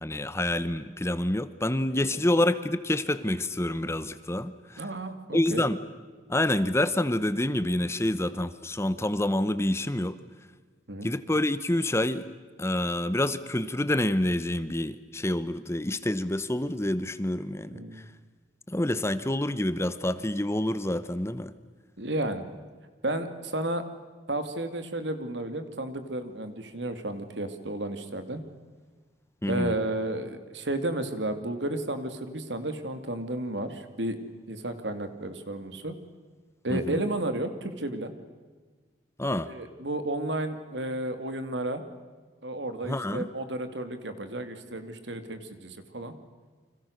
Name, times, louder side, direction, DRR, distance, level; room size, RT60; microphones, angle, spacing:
voice 1, 0.0-4.8 5.3-5.8 6.3-10.2 11.0-12.3 12.6-17.8 18.7-21.5 29.4-29.8 36.7-37.0 39.2-39.5 42.9-43.3, left 1 dB, 15° left, 14 dB, 0.9 m, -27 dB
voice 2, 4.8-5.6 10.9-11.1 17.7-18.0 22.0-22.4 23.0-23.8 24.3-28.4 29.5-34.2 34.5-35.9 36.6-38.1 39.4-41.8 42.4-46.1, right 1 dB, 70° right, 9 dB, 2.6 m, -32 dB
30.0 x 26.0 x 6.6 m, 1.4 s
head